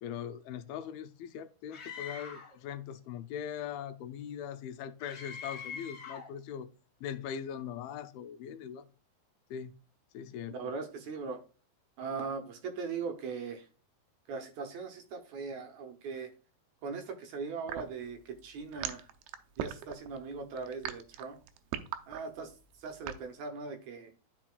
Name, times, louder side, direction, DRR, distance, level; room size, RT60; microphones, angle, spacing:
voice 1, 0.0-6.7 7.0-8.9 9.5-9.7 10.1-10.6, left 8 dB, 85° left, 2.5 m, -41 dB
Screaming, 1.7-2.6 5.0-6.4, left 6 dB, 60° left, 1.2 m, -44 dB
voice 2, 10.5-11.4 12.0-13.7 14.3-16.3 16.8-19.1 19.6-21.4 22.1-22.5 22.8-24.1, right 5 dB, 70° right, 1.8 m, -39 dB
sound 1, 17.7-23.3, right 10 dB, 90° right, 2.7 m, -39 dB
13.0 x 4.6 x 2.3 m
omnidirectional pair, 4.3 m